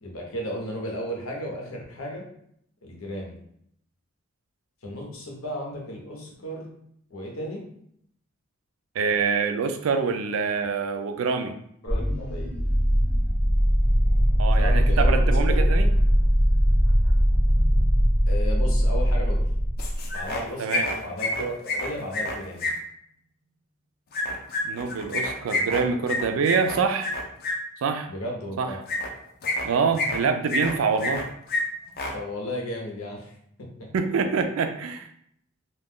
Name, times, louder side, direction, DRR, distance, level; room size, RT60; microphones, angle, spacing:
voice 1, 0.0-2.2 2.8-3.3 4.8-6.7 7.1-7.6 11.8-12.5 14.6-15.2 15.5-15.6 18.3-19.4 20.1-22.7 28.1-28.8 32.1-33.3 33.8-33.9, equal, 90° left, -1 dB, 0.8 m, -34 dB
voice 2, 9.0-11.6 14.4-15.9 20.6-20.9 24.6-27.1 27.8-28.1 28.6-28.7 29.6-31.2 33.9-35.1, right 5 dB, 80° right, 7 dB, 0.4 m, -25 dB
sound 1, 11.9-20.1, equal, 10° right, 0.6 m, -20 dB
sound 2, 19.8-20.4 20.7-22.7 24.1-27.5 28.9-29.1 29.4-30.2 30.5-31.2 31.5-31.6 31.9-32.1, left 2 dB, 50° left, 0.5 m, -28 dB
2.4 x 2.2 x 3.5 m, 0.70 s
head